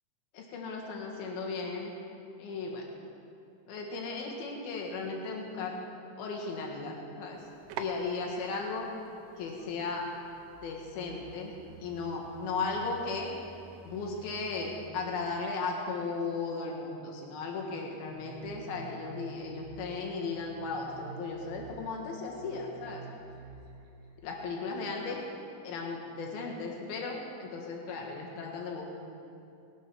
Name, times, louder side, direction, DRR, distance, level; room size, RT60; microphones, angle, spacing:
voice 1, 0.3-1.9 2.4-2.9 3.7-5.8 6.2-7.4 7.8-8.9 9.4-10.1 10.6-11.5 11.8-13.3 13.8-23.0 24.2-25.2 25.6-29.1, left 4 dB, 60° left, 0 dB, 3.1 m, -36 dB
sound 1, 7.3-14.9, right 5 dB, 80° right, 3.1 m, -49 dB
sound 2, 18.1-24.1, right 5 dB, 45° right, 2.0 m, -49 dB
19.5 x 8.5 x 6.3 m, 2.7 s
omnidirectional pair, 5.7 m